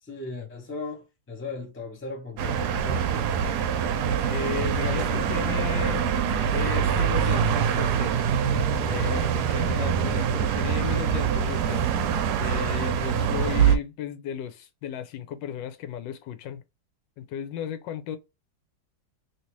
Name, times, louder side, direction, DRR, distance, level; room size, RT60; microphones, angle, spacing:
voice 1, 0.0-3.3 8.9-9.3, left 3 dB, 15° left, 0.4 m, -38 dB
sound 1, 2.4-13.8, right 7 dB, 70° right, 1.0 m, -24 dB
voice 2, 4.2-6.1 6.5-8.1 8.8-11.8 12.4-16.6 17.2-18.2, left 9 dB, 85° left, 1.3 m, -35 dB
3.2 x 2.8 x 3.0 m
omnidirectional pair, 1.9 m